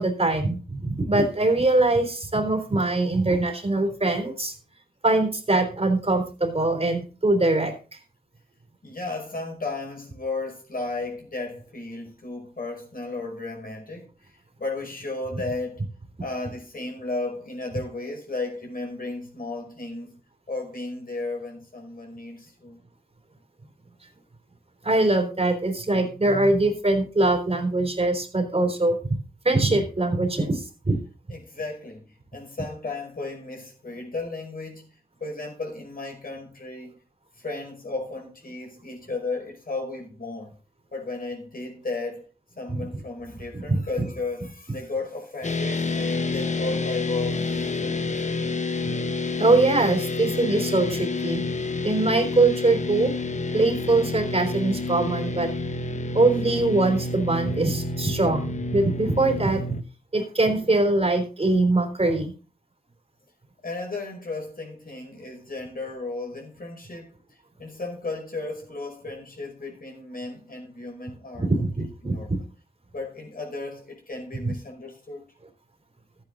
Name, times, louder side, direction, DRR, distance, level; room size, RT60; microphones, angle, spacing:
voice 1, 0.0-4.5 5.0-8.0 24.8-29.0 29.4-31.0 42.7-42.9 43.5-43.8 49.4-51.4 51.8-53.1 53.5-55.5 56.1-59.6 60.1-62.3 71.4-72.4 74.4-74.5, right 2 dB, 40° right, 3.3 m, -22 dB
voice 2, 8.8-14.3 14.6-15.8 16.2-20.2 20.5-22.8 31.3-32.1 32.3-34.9 35.2-36.9 37.4-40.5 40.9-42.3 42.6-48.0 63.6-67.1 67.6-71.7 72.0-72.3 72.9-75.2, left 3 dB, 65° left, 5.3 m, -34 dB
sound 1, 45.4-59.8, left 3 dB, 45° left, 1.1 m, -29 dB
13.5 x 9.2 x 3.8 m
wide cardioid pair, 80°, 16 cm